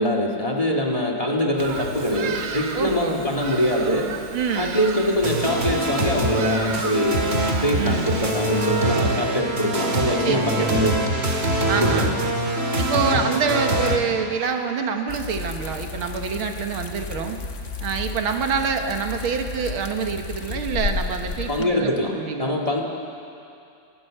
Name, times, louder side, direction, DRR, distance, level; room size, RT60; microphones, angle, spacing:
voice 1, 0.0-4.1 4.6-7.2 7.6-11.0 11.8-12.2 13.1-13.2 21.5-22.8, equal, 20° left, 1 dB, 1.9 m, -23 dB
Bird vocalization bird call bird song, 1.6-8.8, right 5 dB, 65° right, 1.8 m, -35 dB
voice 2, 2.7-3.2 4.3-4.8 7.8-8.1 10.2-11.0 11.7-12.1 12.8-17.4 17.8-22.8, right 5 dB, 85° right, 5 dB, 2.2 m, -26 dB
sound 1, 5.2-14.0, right 1 dB, 30° right, 2.1 m, -24 dB
sound 2, 15.1-21.7, left 4 dB, 45° left, 1.2 m, -32 dB
29.5 x 13.0 x 7.7 m, 2.6 s
omnidirectional pair, 2.2 m